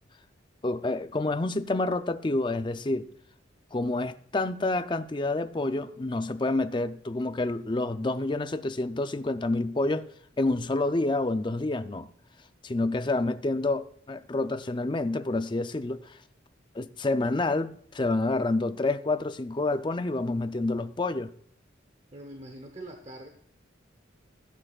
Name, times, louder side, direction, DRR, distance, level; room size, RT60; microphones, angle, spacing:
voice 1, 0.6-3.1 3.7-10.0 10.4-12.1 12.6-16.2 16.7-21.3, left 2 dB, 25° left, 0.5 m, -28 dB
voice 2, 22.1-23.3, right 1 dB, 35° right, 0.9 m, -43 dB
16.5 x 7.6 x 2.4 m
head